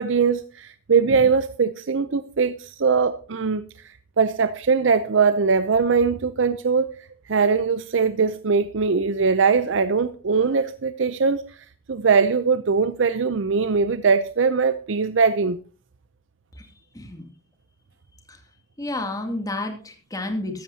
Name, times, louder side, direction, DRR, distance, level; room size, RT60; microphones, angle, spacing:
voice 1, 0.0-15.6, right 5 dB, 70° right, 0.6 m, -21 dB
voice 2, 16.9-17.3 18.3-18.4 18.8-20.6, left 2 dB, 20° left, 2.5 m, -30 dB
14.5 x 13.0 x 2.8 m
head